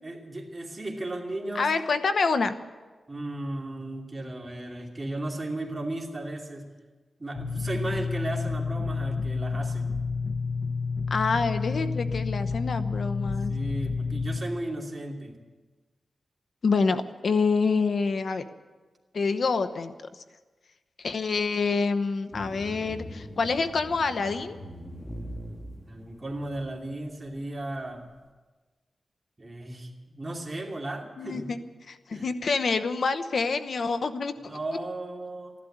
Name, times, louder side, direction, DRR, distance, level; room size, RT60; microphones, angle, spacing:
voice 1, 0.0-1.7 3.1-6.7 7.2-9.9 13.2-15.4 25.9-28.0 29.4-31.5 32.1-32.3 34.5-35.5, right 1 dB, 25° right, -1 dB, 2.7 m, -35 dB
voice 2, 1.5-2.5 11.1-13.5 16.6-18.4 19.1-19.9 21.0-24.6 31.2-31.6 31.9-34.6, left 4 dB, 60° left, 10 dB, 0.9 m, -27 dB
sound 1, 7.3-14.4, left 4 dB, 45° left, 1.3 m, -30 dB
sound 2, 22.3-26.9, equal, 25° left, 1.5 m, -41 dB
14.0 x 12.0 x 8.6 m, 1.3 s
wide cardioid pair, 115°, 0 cm